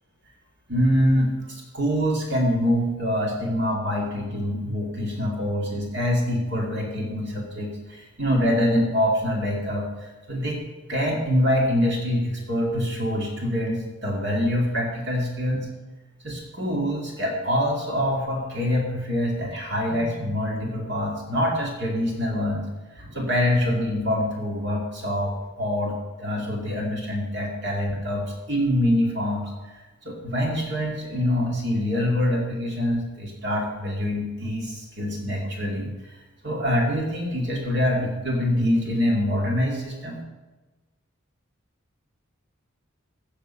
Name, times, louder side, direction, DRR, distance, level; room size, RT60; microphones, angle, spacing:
voice 1, 0.7-10.6 10.9-15.6 16.2-29.5 30.0-36.1 36.4-40.2, left 1 dB, 55° right, -1 dB, 2.4 m, -25 dB
16.0 x 6.7 x 5.6 m, 1.2 s
head